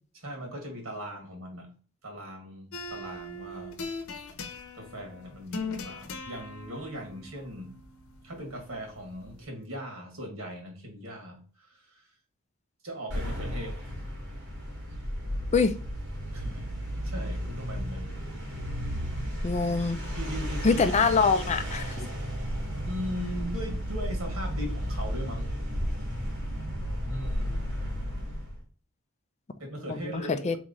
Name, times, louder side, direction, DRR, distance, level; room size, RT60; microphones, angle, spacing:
voice 1, 0.1-1.7 2.0-3.8 4.7-7.7 8.2-12.1 12.8-13.9 16.3-16.7 17.0-18.2 20.1-20.8 22.9-25.5 27.1-27.7 29.6-30.5, equal, 85° right, 1.9 m, -39 dB
sound 1, 2.7-9.4, left 3 dB, 85° left, 0.7 m, -41 dB
sound 2, 13.1-28.6, equal, 60° right, 2.2 m, -33 dB
voice 2, 19.4-20.0 20.6-22.1 29.9-30.6, left 4 dB, 35° left, 0.4 m, -24 dB
3.6 x 3.1 x 3.9 m
head